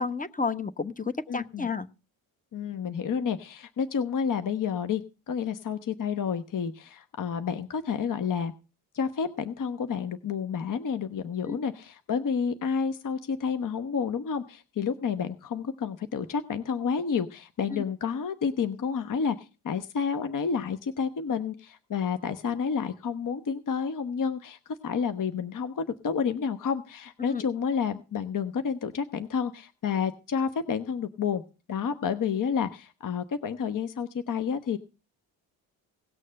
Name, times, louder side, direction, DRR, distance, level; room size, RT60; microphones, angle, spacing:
voice 1, 0.0-1.9 11.5-11.6 17.7-17.8 27.3-27.4, left 4 dB, 15° left, 11 dB, 1.1 m, -31 dB
voice 2, 1.3-1.7 2.5-8.5 8.9-31.4 31.7-34.8, left 6 dB, 45° left, 10 dB, 1.1 m, -30 dB
18.0 x 6.5 x 6.4 m, 0.33 s
supercardioid pair, 65°, 46 cm